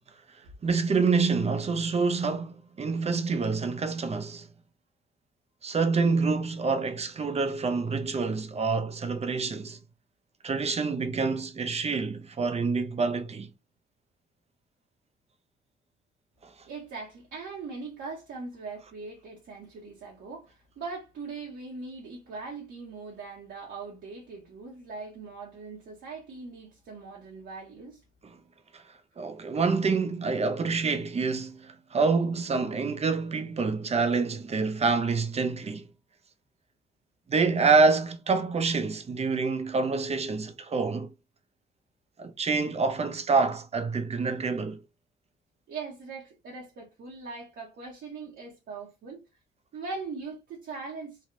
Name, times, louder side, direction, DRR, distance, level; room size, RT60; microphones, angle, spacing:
voice 1, 0.6-4.5 5.6-9.8 10.4-13.5 28.2-28.4 28.7-28.8 29.2-35.9 37.3-41.1 42.2-44.8, right 4 dB, 30° right, 0.6 m, -27 dB
voice 2, 16.7-28.0 45.7-49.2 49.7-51.2, right 4 dB, 70° right, 1.0 m, -40 dB
3.3 x 2.3 x 2.6 m
cardioid pair, 90°, 20 cm